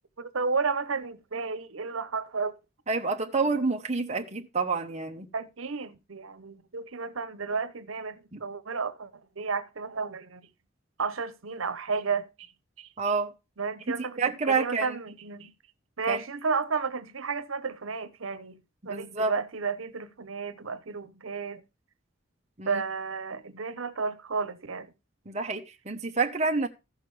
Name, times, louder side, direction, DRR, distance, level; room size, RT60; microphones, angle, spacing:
voice 1, 0.2-2.6 5.3-9.1 9.4-10.5 11.0-12.5 12.8-12.9 13.6-15.5 16.0-18.6 18.8-21.6 22.7-24.9, right 4 dB, 90° right, 0.9 m, -32 dB
voice 2, 2.9-5.3 8.3-8.4 13.0-13.3 13.9-15.0 16.1-16.2 18.8-19.4 22.6-22.8 25.3-26.7, right 4 dB, 35° right, 0.9 m, -28 dB
15.5 x 6.6 x 3.2 m
head